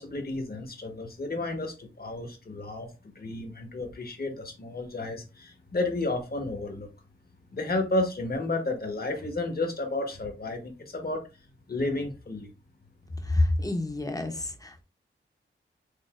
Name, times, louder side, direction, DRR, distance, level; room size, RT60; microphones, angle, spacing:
voice 1, 0.0-6.9 7.5-11.2 11.7-12.5, left 2 dB, 45° left, 1.2 m, -32 dB
voice 2, 13.2-14.8, left 2 dB, 15° left, 0.8 m, -27 dB
6.4 x 2.7 x 2.4 m
wide cardioid pair, 75°, 21 cm